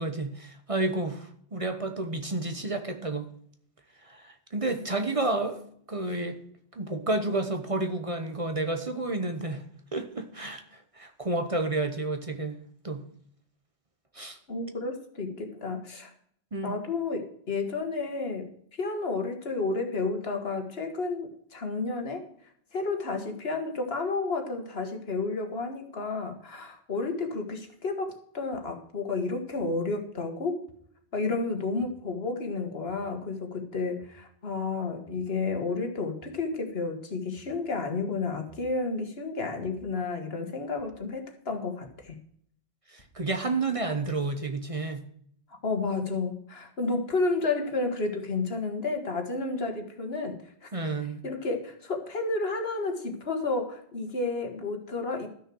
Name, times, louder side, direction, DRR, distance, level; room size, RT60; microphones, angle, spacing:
voice 1, 0.0-3.3 4.0-5.6 5.9-6.4 6.7-9.7 9.9-12.6 12.8-13.0 14.1-14.4 16.5-16.8 42.9-45.1 50.7-51.2, right 2 dB, 35° right, 6 dB, 1.0 m, -30 dB
voice 2, 14.5-16.1 16.6-22.3 22.7-30.6 31.1-42.2 45.6-50.7 51.2-55.3, left 3 dB, 75° left, 4 dB, 1.8 m, -31 dB
sound 1, 28.5-28.6 29.6-29.7 30.7-30.8 31.8-32.0 32.9-33.1 34.0-34.2 35.1-35.3 36.2-36.4 37.4-37.6 38.5-38.7 39.7-39.9 40.8-41.0 41.9-42.1 43.0-43.2 44.1-44.3, right 1 dB, 30° left, 2.5 m, -57 dB
13.0 x 6.5 x 6.2 m, 0.66 s
omnidirectional pair, 1.0 m